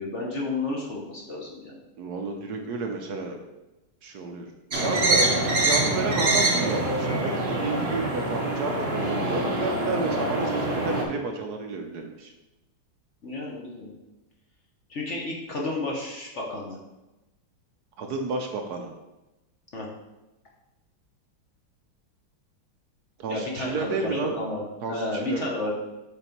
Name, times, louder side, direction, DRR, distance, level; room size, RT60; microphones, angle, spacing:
voice 1, 0.0-1.7 13.2-13.9 14.9-16.8 19.7-19.9 23.3-24.6 24.9-25.7, left 2 dB, 50° left, -2 dB, 0.9 m, -31 dB
voice 2, 2.0-3.4 4.0-4.4 4.8-12.3 18.0-18.9 23.2-24.3 24.8-25.4, right 3 dB, 65° right, 3 dB, 1.0 m, -31 dB
sound 1, 4.7-11.0, right 2 dB, 40° right, 1.0 m, -25 dB
7.1 x 3.9 x 4.4 m, 1.0 s
omnidirectional pair, 2.3 m